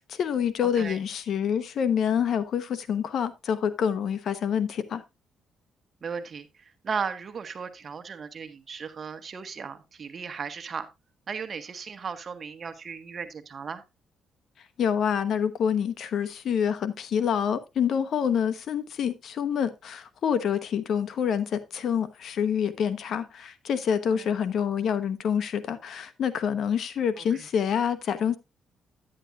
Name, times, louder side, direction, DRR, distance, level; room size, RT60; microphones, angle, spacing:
voice 1, 0.0-5.0 14.8-28.4, left 8 dB, 65° left, 1.0 m, -27 dB
voice 2, 0.6-1.0 6.0-10.9 11.3-13.8 24.1-24.3 27.2-27.5, right 6 dB, 45° right, 1.4 m, -36 dB
10.0 x 10.0 x 2.5 m
cardioid pair, 90°, 0 cm